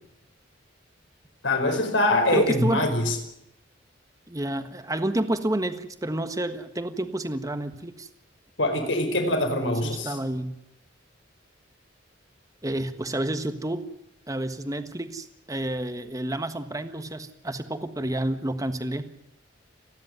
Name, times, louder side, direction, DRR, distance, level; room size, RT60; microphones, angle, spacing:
voice 1, 1.4-3.2 8.6-10.2, left 1 dB, 75° left, 5 dB, 4.8 m, -23 dB
voice 2, 2.3-2.9 4.3-8.1 9.8-10.5 12.6-13.9 14.3-19.1, right 1 dB, 20° right, 9 dB, 1.4 m, -29 dB
30.0 x 11.0 x 9.3 m, 0.82 s
head